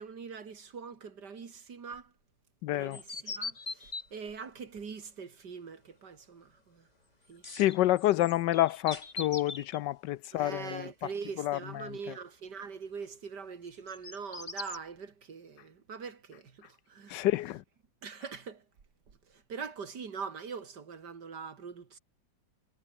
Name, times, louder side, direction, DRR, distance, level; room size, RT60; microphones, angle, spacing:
voice 1, 0.0-2.1 2.7-6.9 7.3-7.6 10.3-17.3 18.0-18.6 19.3-22.0, right 5 dB, 70° right, 2.8 m, -43 dB
voice 2, 2.6-3.0 7.5-11.1 11.4-12.2 17.1-17.6, left 15 dB, 80° left, 1.3 m, -29 dB
sound 1, 2.9-4.1 7.5-9.8 13.7-14.8, left 3 dB, 25° left, 1.6 m, -41 dB
sound 2, 4.5-15.1, left 3 dB, 40° left, 3.3 m, -59 dB
omnidirectional pair, 1.9 m